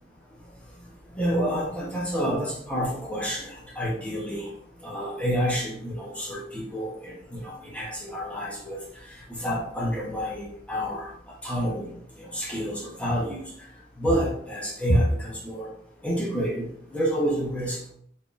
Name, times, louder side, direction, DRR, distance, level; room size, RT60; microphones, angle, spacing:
voice 1, 1.2-4.5 4.8-8.8 9.3-11.1 11.4-11.9 12.2-13.4 14.0-15.7 16.0-17.8, equal, 5° left, -5 dB, 0.9 m, -28 dB
4.3 x 3.5 x 2.5 m, 0.68 s
head